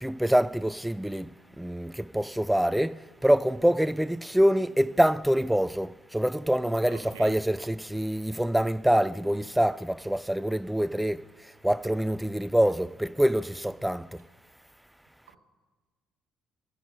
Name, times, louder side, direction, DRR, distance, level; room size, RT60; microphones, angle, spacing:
voice 1, 0.0-1.3 1.6-3.0 3.2-11.2 11.6-14.1, equal, 5° right, 0.4 m, -25 dB
voice 2, 6.9-7.3 15.3-15.4, right 6 dB, 80° right, 1.0 m, -45 dB
11.5 x 6.6 x 9.5 m
hypercardioid pair, 50°, 0 cm